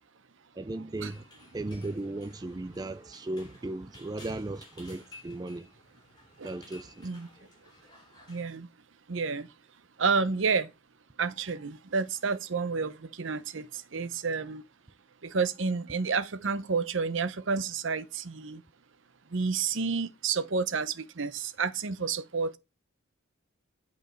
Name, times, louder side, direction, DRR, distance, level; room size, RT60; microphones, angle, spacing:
voice 1, 0.6-1.2 1.5-5.7 6.4-7.1, right 2 dB, 20° right, 0.4 m, -36 dB
sound 1, 1.0-8.5, left 1 dB, 20° left, 3.0 m, -55 dB
voice 2, 8.3-8.7 9.1-9.5 10.0-10.7 11.2-14.6 15.2-18.6 19.3-22.6, right 5 dB, 65° right, 0.7 m, -30 dB
8.6 x 5.3 x 4.4 m
head